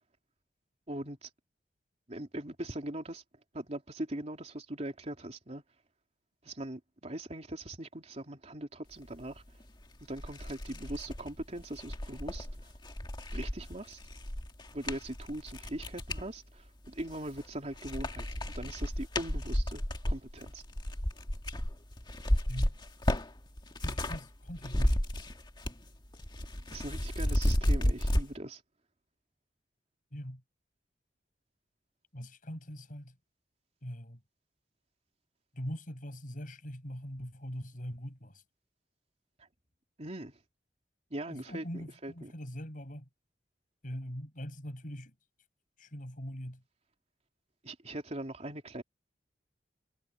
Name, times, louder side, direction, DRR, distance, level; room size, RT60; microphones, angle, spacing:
voice 1, 0.9-1.3 2.1-3.2 3.5-5.6 6.4-9.4 10.1-12.7 13.3-14.0 14.7-18.3 18.6-20.6 26.7-28.6 39.4-39.5 40.0-40.4 41.1-42.3 47.6-48.8, right 1 dB, 40° right, 3.4 m, -41 dB
sound 1, 9.6-9.7 10.1-16.3 16.9-17.5 17.8-24.2 24.5-25.9 26.1-28.2, left 1 dB, 25° left, 1.8 m, -32 dB
voice 2, 23.8-25.0 30.1-30.4 32.1-33.2 33.8-34.2 35.5-38.4 41.3-43.1 43.8-45.1 45.8-46.6, equal, 50° left, 6.2 m, -42 dB
head